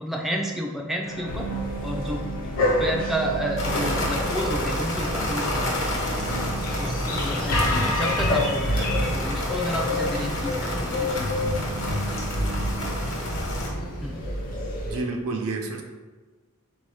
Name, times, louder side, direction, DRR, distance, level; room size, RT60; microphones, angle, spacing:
voice 1, 0.0-1.5 1.8-2.2 2.8-6.0 6.8-11.2 14.0-14.2, equal, ahead, -1 dB, 0.3 m, -31 dB
sound 1, 1.0-13.9, equal, 85° left, 0.6 m, -31 dB
sound 2, 1.3-15.0, left 1 dB, 40° left, 0.7 m, -30 dB
voice 2, 2.6-2.9 14.8-15.8, right 3 dB, 75° right, 2 dB, 0.6 m, -30 dB
sound 3, 3.6-13.7, left 1 dB, 65° left, 1.1 m, -30 dB
3.8 x 2.7 x 4.7 m, 1.3 s
head